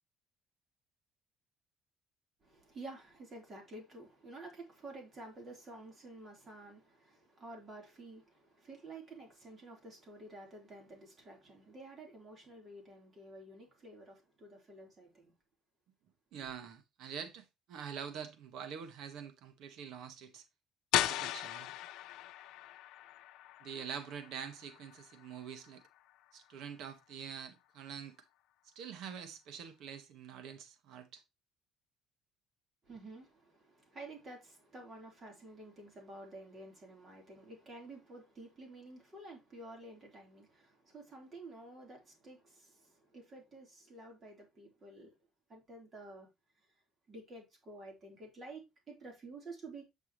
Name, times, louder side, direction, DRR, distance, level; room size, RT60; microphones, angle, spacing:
voice 1, 2.4-15.3 16.4-16.5 32.8-45.2 45.5-46.3 47.1-49.9, right 2 dB, 25° right, 3.7 m, -51 dB
voice 2, 16.3-20.4 21.0-21.7 23.6-25.8 26.3-28.2 28.6-31.2, right 7 dB, 65° right, 1.5 m, -46 dB
sound 1, 20.9-26.6, left 14 dB, 80° left, 0.7 m, -38 dB
8.8 x 6.1 x 3.1 m
cardioid pair, 175°, 0 cm